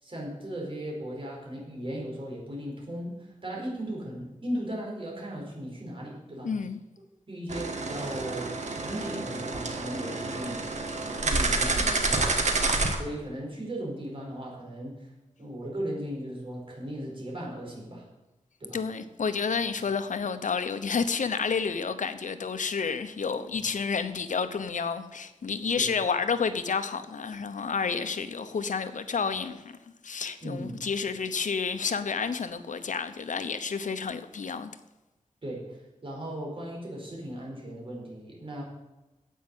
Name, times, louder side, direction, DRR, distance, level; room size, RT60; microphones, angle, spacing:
voice 1, 0.0-6.5 7.3-8.5 8.8-10.7 11.1-12.5 13.0-15.1 15.4-18.1 18.6-18.8 23.5-23.6 25.8-25.9 30.4-31.1 35.4-38.6, equal, 45° right, 4.8 m, -37 dB
voice 2, 6.4-6.8 18.7-29.7 30.0-34.7, left 5 dB, 90° left, 0.9 m, -30 dB
sound 1, 7.5-13.0, right 3 dB, 70° right, 1.7 m, -28 dB
10.0 x 8.4 x 8.0 m
wide cardioid pair, 115°, 13 cm